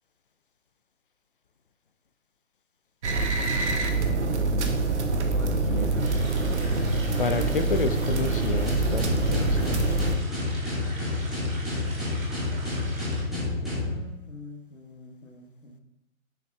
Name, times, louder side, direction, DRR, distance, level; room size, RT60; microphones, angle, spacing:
sound 1, 3.0-10.1, right 3 dB, 55° right, 0.9 m, -25 dB
voice 1, 5.3-6.1 12.9-15.8, left 2 dB, 80° left, -2 dB, 1.2 m, -45 dB
sound 2, 6.0-13.2, right 1 dB, 75° right, 1.9 m, -43 dB
voice 2, 7.2-9.8, left 4 dB, 40° left, 9 dB, 0.4 m, -30 dB
sound 3, 8.7-13.9, left 2 dB, ahead, 1.1 m, -29 dB
7.1 x 6.1 x 2.3 m, 0.86 s
figure-of-eight pair, 140°, 41 cm